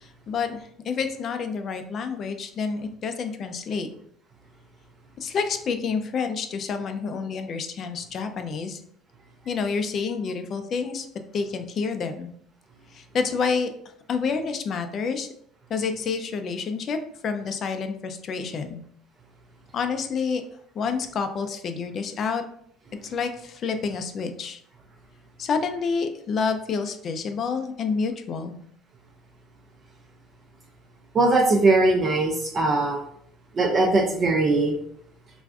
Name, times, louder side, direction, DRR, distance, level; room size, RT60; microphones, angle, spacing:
voice 1, 0.0-3.9 5.2-8.8 9.5-11.1 11.3-12.3 12.9-13.7 14.1-15.3 15.7-17.0 17.2-18.8 19.7-20.4 20.8-22.4 23.0-24.6 25.4-28.5, left 5 dB, 45° left, 7 dB, 0.4 m, -28 dB
voice 2, 31.1-33.0 33.6-34.8, right 2 dB, 35° right, 0 dB, 0.4 m, -20 dB
3.3 x 2.5 x 2.3 m, 0.68 s
cardioid pair, 115°, 0 cm